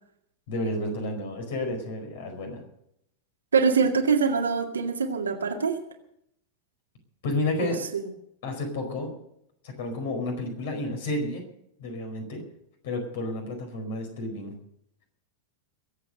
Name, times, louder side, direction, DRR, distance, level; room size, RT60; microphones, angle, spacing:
voice 1, 0.5-2.6 7.2-7.8 8.4-9.1 9.6-11.4 11.8-12.4 12.8-14.5, left 2 dB, 55° left, 3 dB, 4.8 m, -31 dB
voice 2, 3.5-5.8 7.6-8.0, right 5 dB, 70° right, 3 dB, 2.1 m, -24 dB
22.5 x 8.3 x 6.6 m, 0.75 s
figure-of-eight pair, 90°, 0 cm